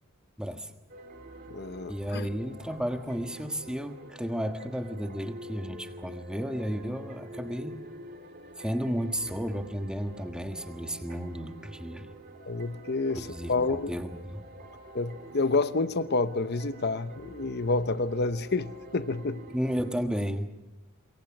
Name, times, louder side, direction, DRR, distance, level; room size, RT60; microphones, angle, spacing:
voice 1, 0.4-0.7 1.9-7.8 8.6-12.1 13.1-14.4 19.5-20.5, equal, 5° right, 1.4 m, -33 dB
sound 1, 0.9-19.9, right 1 dB, 45° right, 2.3 m, -47 dB
voice 2, 1.5-2.3 12.5-13.9 14.9-19.4, left 3 dB, 50° left, 0.9 m, -29 dB
27.0 x 23.0 x 6.1 m
head